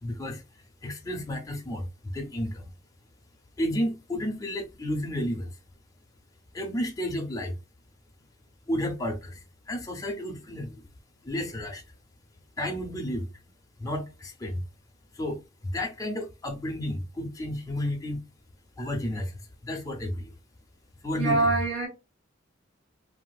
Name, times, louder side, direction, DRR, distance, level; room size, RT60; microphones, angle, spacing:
voice 1, 0.0-0.4 0.8-2.7 3.6-5.6 6.5-7.6 8.7-10.8 11.2-11.8 12.6-13.3 13.8-14.6 15.1-18.2 18.8-20.3 21.0-21.5, left 1 dB, 15° left, 0.6 m, -32 dB
voice 2, 21.1-21.9, right 3 dB, 65° right, 1.7 m, -24 dB
3.4 x 2.5 x 2.3 m
head